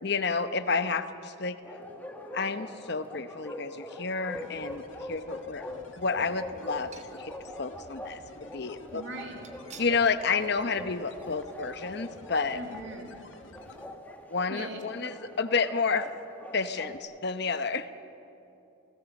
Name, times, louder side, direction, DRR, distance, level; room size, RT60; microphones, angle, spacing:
voice 1, 0.0-1.6 2.3-5.7 6.0-9.0 9.8-12.6 14.3-16.1 16.5-17.9, left 4 dB, 50° left, 11 dB, 0.9 m, -30 dB
Bark, 1.6-17.0, left 1 dB, 10° left, 1.6 m, -43 dB
sound 1, 4.3-13.9, left 2 dB, 65° left, 1.8 m, -52 dB
sound 2, 4.3-4.9 5.5-5.6 6.8-7.5 7.8-7.9 9.4-10.0 10.5-10.6 10.9-11.0, right 5 dB, 35° right, 1.4 m, -52 dB
voice 2, 8.9-9.4 12.5-13.1 14.5-15.1, right 1 dB, 60° right, 2 dB, 2.8 m, -40 dB
28.5 x 18.0 x 7.2 m, 2.8 s
head